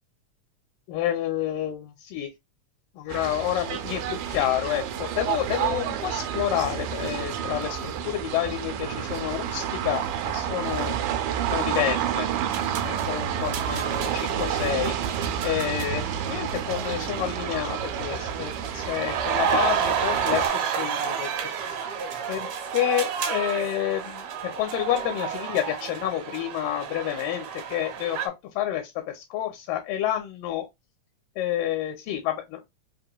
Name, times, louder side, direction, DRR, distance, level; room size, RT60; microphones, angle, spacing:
voice 1, 0.9-2.3 3.0-11.0 11.5-12.3 12.8-14.9 15.4-21.3 21.7-21.8 22.3-22.5 22.7-30.7 31.4-32.7, left 12 dB, 85° left, 2.3 m, -29 dB
sound 1, 3.1-20.5, right 9 dB, 90° right, 2.3 m, -30 dB
Sports Crowd Various Sounds, 12.5-28.3, right 7 dB, 70° right, 2.4 m, -31 dB
5.3 x 2.9 x 2.2 m
omnidirectional pair, 3.8 m